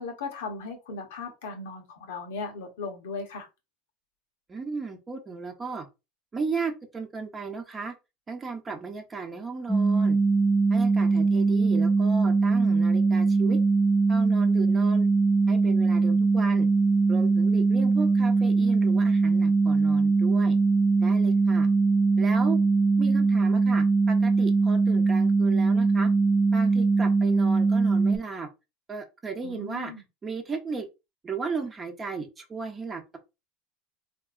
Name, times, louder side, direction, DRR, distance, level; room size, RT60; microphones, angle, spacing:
voice 1, 0.0-3.5 29.4-30.0, left 4 dB, 85° left, 1.0 m, -37 dB
voice 2, 4.5-5.9 6.3-7.9 8.3-10.2 10.7-13.6 14.1-15.1 15.5-16.7 17.1-20.6 21.0-21.7 22.2-22.6 23.0-26.1 26.5-28.5 28.9-29.9 30.2-30.9 31.2-33.2, right 4 dB, 25° right, 0.9 m, -35 dB
sound 1, 9.7-28.2, right 4 dB, 15° left, 0.7 m, -21 dB
3.5 x 2.6 x 2.4 m
supercardioid pair, 100°, 0 cm